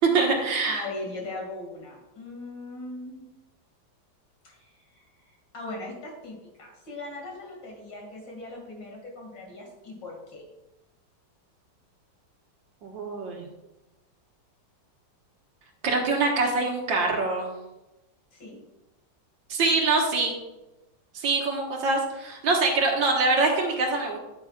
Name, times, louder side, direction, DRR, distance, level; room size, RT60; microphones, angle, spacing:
voice 1, 0.1-0.8 12.8-13.5 15.8-17.5 19.5-20.4 21.1-24.2, right 3 dB, 80° right, 1 dB, 2.1 m, -24 dB
voice 2, 0.6-3.2 4.4-10.4 18.3-18.6, left 2 dB, 70° left, -1 dB, 3.0 m, -40 dB
9.4 x 9.1 x 2.4 m, 0.99 s
omnidirectional pair, 2.0 m